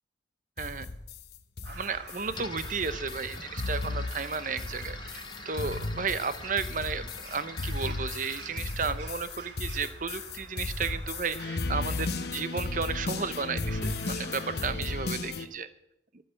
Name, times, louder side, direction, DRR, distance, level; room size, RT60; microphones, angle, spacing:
sound 1, 0.6-15.5, left 3 dB, 60° left, 0.8 m, -35 dB
voice 1, 0.6-0.9 1.7-15.7, right 5 dB, 45° right, 13 dB, 0.7 m, -33 dB
Crow, 1.6-14.7, right 3 dB, 75° right, 2.1 m, -48 dB
sound 2, 2.3-10.1, left 4 dB, 25° left, 0.8 m, -46 dB
12.5 x 8.4 x 7.6 m, 0.81 s
head